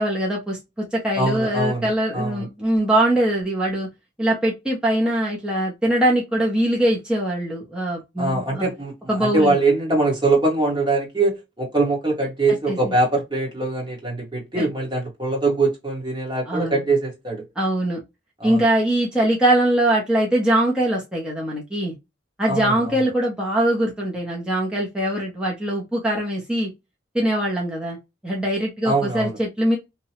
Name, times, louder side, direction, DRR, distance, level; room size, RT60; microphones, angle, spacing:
voice 1, 0.0-3.9 4.2-8.7 9.1-9.6 12.7-12.9 14.6-14.7 16.5-16.8 17.6-18.0 18.4-21.9 22.4-26.7 27.1-28.0 28.2-29.8, right 1 dB, 5° right, 0.8 m, -22 dB
voice 2, 1.1-2.5 8.2-17.4 18.4-18.6 22.5-22.9 28.8-29.4, right 2 dB, 25° right, 1.3 m, -22 dB
2.9 x 2.3 x 2.9 m
head